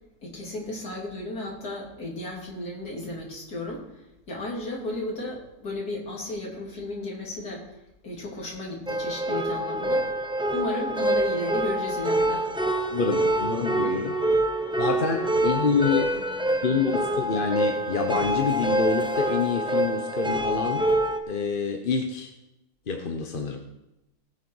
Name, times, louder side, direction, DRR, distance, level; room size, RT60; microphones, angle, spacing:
voice 1, 0.2-3.8 4.3-7.6 8.0-10.1 10.5-12.5, left 2 dB, 80° left, -2 dB, 3.5 m, -34 dB
sound 1, 8.9-21.2, right 1 dB, 5° right, 0.6 m, -26 dB
voice 2, 12.9-14.2 14.8-16.2 16.6-20.9 21.3-22.3 22.9-23.6, left 5 dB, 40° left, 4 dB, 0.9 m, -27 dB
18.5 x 6.8 x 4.7 m, 0.92 s
omnidirectional pair, 1.6 m